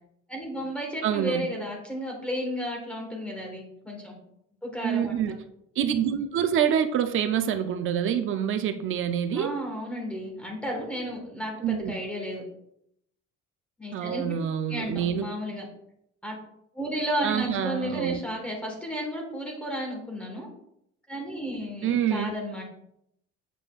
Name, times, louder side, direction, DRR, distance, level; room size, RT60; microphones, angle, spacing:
voice 1, 0.3-4.1 4.6-5.3 9.3-12.4 13.8-14.3 14.7-15.6 16.2-16.4 16.7-20.5 21.1-22.6, equal, 5° left, 0 dB, 1.4 m, -33 dB
voice 2, 1.0-1.5 4.8-5.3 5.8-9.5 11.6-11.9 13.9-15.3 17.2-18.2 21.8-22.3, right 9 dB, 45° right, 8 dB, 0.5 m, -26 dB
8.4 x 5.4 x 2.4 m, 0.76 s
cardioid pair, 170°, 30 cm